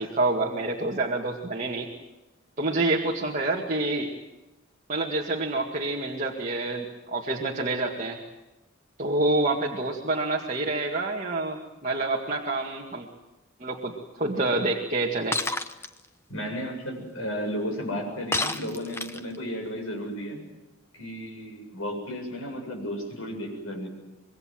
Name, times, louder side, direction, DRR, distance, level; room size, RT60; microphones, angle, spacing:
voice 1, 0.0-1.9 2.6-4.1 4.9-8.2 9.0-13.1 13.6-15.4, right 2 dB, 35° right, -1 dB, 2.2 m, -27 dB
Shatter, 15.3-15.9 18.3-19.4, left 2 dB, 10° left, 0.9 m, -29 dB
voice 2, 16.3-20.4 20.9-23.9, equal, 90° left, 3 dB, 7.7 m, -33 dB
26.0 x 22.0 x 7.8 m, 1.0 s
head